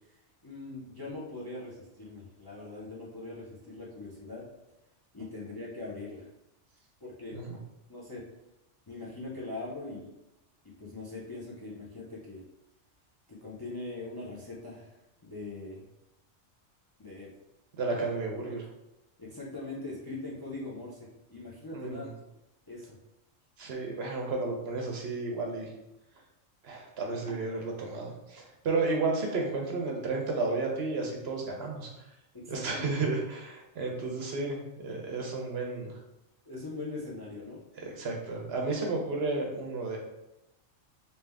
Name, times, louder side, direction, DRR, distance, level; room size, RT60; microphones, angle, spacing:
voice 1, 0.4-4.4 5.1-6.3 7.0-7.4 7.9-8.2 8.9-10.1 10.8-12.4 13.3-15.8 17.0-17.3 19.2-22.1 22.7-23.0 32.3-32.8 36.5-37.6, left 2 dB, 30° left, -5 dB, 0.4 m, -41 dB
voice 2, 17.8-18.7 21.7-22.1 23.6-25.7 26.6-31.9 32.5-34.6 34.8-35.9 37.8-40.0, right 3 dB, 60° right, 1 dB, 0.8 m, -32 dB
3.5 x 2.8 x 3.4 m, 0.92 s
omnidirectional pair, 1.3 m